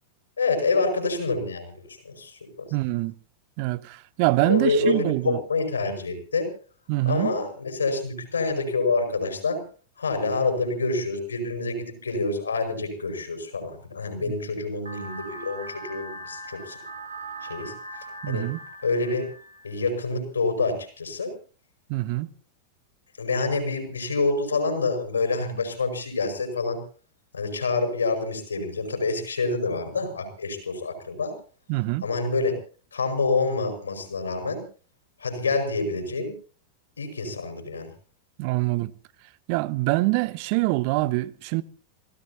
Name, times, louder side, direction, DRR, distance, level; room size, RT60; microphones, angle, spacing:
voice 1, 0.4-2.7 4.4-6.5 7.0-9.6 10.0-16.8 17.4-17.7 18.3-18.5 18.8-19.3 19.6-21.3 23.2-26.8 27.3-31.3 32.0-32.5 32.9-34.6 35.2-36.3 37.0-37.9, left 3 dB, 75° left, 5.6 m, -27 dB
voice 2, 2.7-3.1 3.6-5.4 6.9-7.3 18.2-18.6 21.9-22.3 31.7-32.1 38.4-38.9 39.5-41.6, right 20 dB, 45° right, 0.7 m, -24 dB
sound 1, 14.9-19.9, right 2 dB, 75° right, 2.8 m, -40 dB
28.0 x 17.0 x 2.9 m
figure-of-eight pair, 90°, 0 cm